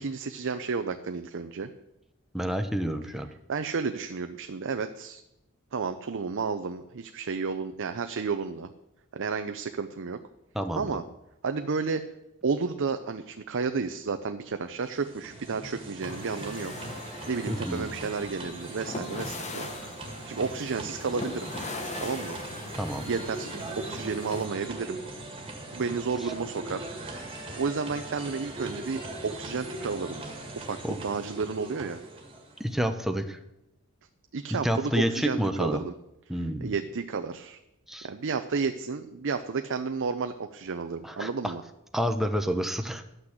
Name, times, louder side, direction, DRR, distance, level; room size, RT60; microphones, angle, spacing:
voice 1, 0.0-1.7 3.5-5.2 5.7-8.7 9.1-10.2 10.8-11.0 11.4-12.0 12.4-16.7 17.3-19.7 20.3-21.5 22.0-22.4 22.9-25.0 25.7-26.9 27.6-30.2 30.6-32.0 34.3-35.9 36.3-37.6 38.0-41.6, right 5 dB, 60° right, 8 dB, 0.6 m, -32 dB
voice 2, 2.3-3.3 10.5-10.9 17.5-17.9 22.7-23.0 30.8-31.0 32.6-33.4 34.5-35.8 36.3-36.7 37.9-38.1 41.0-41.5 41.9-43.1, equal, ahead, 6 dB, 0.7 m, -29 dB
sound 1, 14.7-32.7, right 2 dB, 25° right, 1.8 m, -40 dB
sound 2, 16.0-24.5, left 2 dB, 35° left, 1.1 m, -41 dB
12.0 x 6.0 x 7.9 m, 0.87 s
head